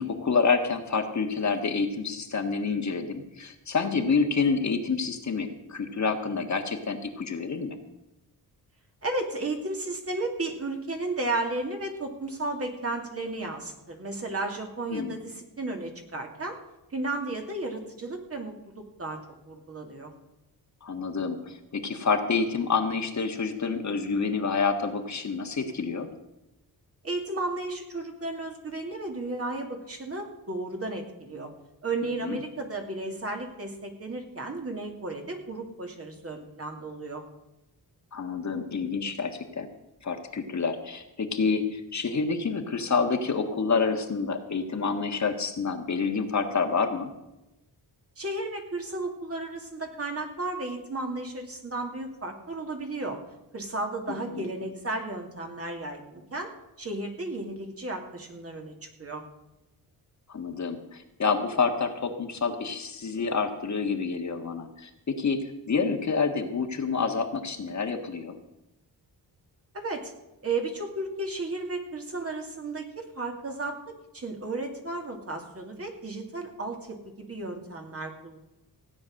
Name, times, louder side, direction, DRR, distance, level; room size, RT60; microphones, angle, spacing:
voice 1, 0.0-7.8 14.9-15.2 20.8-26.1 32.2-32.4 38.1-39.7 40.0-47.1 54.1-54.5 60.3-68.3, left 5 dB, 45° left, 5 dB, 1.6 m, -28 dB
voice 2, 9.0-16.6 16.9-19.2 19.5-20.1 27.0-31.5 31.8-37.2 48.2-53.2 53.5-56.5 56.8-58.7 59.0-59.2 69.7-70.1 70.4-78.4, right 2 dB, 35° right, 3 dB, 2.6 m, -34 dB
16.5 x 9.4 x 6.4 m, 0.95 s
wide cardioid pair, 115°, 39 cm